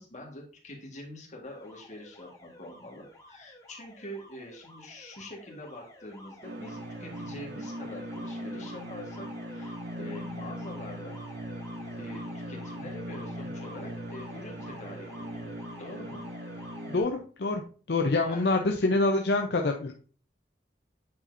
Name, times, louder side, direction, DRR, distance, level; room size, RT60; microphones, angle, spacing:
voice 1, 0.0-11.2 12.0-16.2 18.2-18.6, left 1 dB, 45° left, 0 dB, 1.6 m, -45 dB
Alarm, 1.4-17.1, left 1 dB, 20° left, 1.3 m, -50 dB
sound 1, 6.4-17.0, equal, 85° right, 0.7 m, -39 dB
voice 2, 16.9-17.6 17.9-19.9, left 2 dB, 65° left, 3 dB, 0.6 m, -26 dB
8.7 x 4.2 x 2.6 m, 0.39 s
head